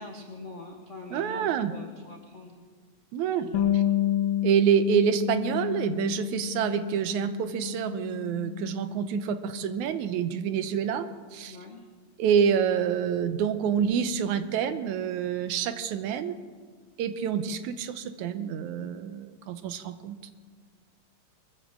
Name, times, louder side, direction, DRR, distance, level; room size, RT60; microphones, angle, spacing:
voice 1, 0.0-2.6 3.4-3.8 11.5-11.8, left 3 dB, 60° left, 2 dB, 0.7 m, -44 dB
voice 2, 1.1-1.7 3.1-3.5 3.7-3.8 4.4-11.6 12.2-16.4 17.0-20.2, right 8 dB, 85° right, 10 dB, 2.2 m, -27 dB
Bass guitar, 3.5-9.8, left 12 dB, 80° left, 2.3 m, -30 dB
22.5 x 15.0 x 3.7 m, 1.5 s
omnidirectional pair, 3.4 m